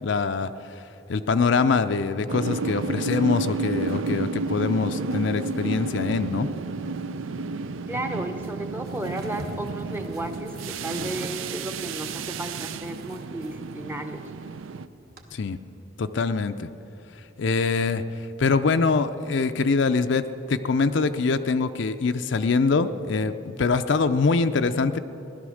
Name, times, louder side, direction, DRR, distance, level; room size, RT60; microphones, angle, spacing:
voice 1, 0.0-0.5 1.1-6.5 15.3-15.6 16.0-16.7 17.4-18.0 18.4-25.0, left 4 dB, 60° left, 10 dB, 0.5 m, -24 dB
sound 1, 2.3-14.9, right 3 dB, 75° right, 0.5 m, -31 dB
voice 2, 7.9-14.2, right 1 dB, 10° right, 6 dB, 0.7 m, -34 dB
sound 2, 8.6-15.2, right 1 dB, 50° right, 1.4 m, -45 dB
17.0 x 12.0 x 6.4 m, 2.9 s
head